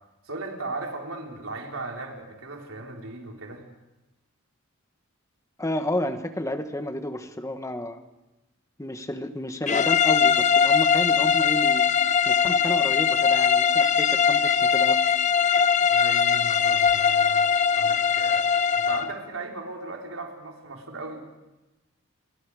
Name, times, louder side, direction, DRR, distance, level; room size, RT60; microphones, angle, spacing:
voice 1, 0.2-3.6 15.9-17.5 17.8-21.3, right 2 dB, 75° right, 0 dB, 4.3 m, -37 dB
voice 2, 5.6-8.0 8.8-11.8 12.3-15.0, left 1 dB, 15° left, 7 dB, 1.4 m, -31 dB
sound 1, 9.7-19.1, left 7 dB, 35° left, 0.9 m, -21 dB
28.5 x 23.5 x 5.0 m, 1.0 s
head